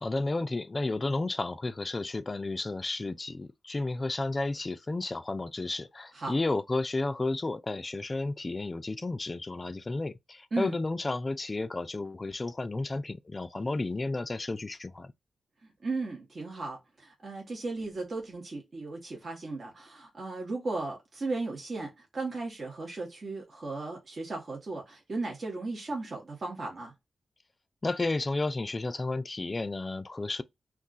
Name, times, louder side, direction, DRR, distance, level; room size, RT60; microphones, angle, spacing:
voice 1, 0.0-15.1 27.8-30.4, left 2 dB, 30° left, 0.3 m, -32 dB
voice 2, 15.8-26.9, right 3 dB, 50° right, 0.9 m, -36 dB
2.4 x 2.3 x 3.8 m
wide cardioid pair, 95°, 0 cm